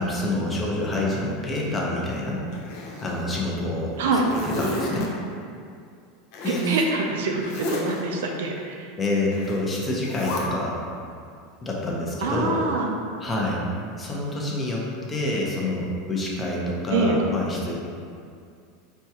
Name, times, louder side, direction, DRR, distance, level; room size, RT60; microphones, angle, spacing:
voice 1, 0.0-2.4 3.0-3.9 4.3-5.1 6.4-6.8 9.0-10.8 11.6-12.6 13.2-13.6 14.0-17.7, left 1 dB, 20° left, -3 dB, 0.6 m, -27 dB
Zipper (clothing), 2.5-3.5 3.9-5.1 6.3-6.7 7.4-8.0 9.3-9.6 10.0-10.4, left 2 dB, 60° left, 0.6 m, -33 dB
voice 2, 6.7-8.9 12.2-12.9 16.9-17.2, right 3 dB, 85° right, 1 dB, 0.5 m, -25 dB
4.4 x 2.3 x 2.8 m, 2.4 s
supercardioid pair, 125°, 0 cm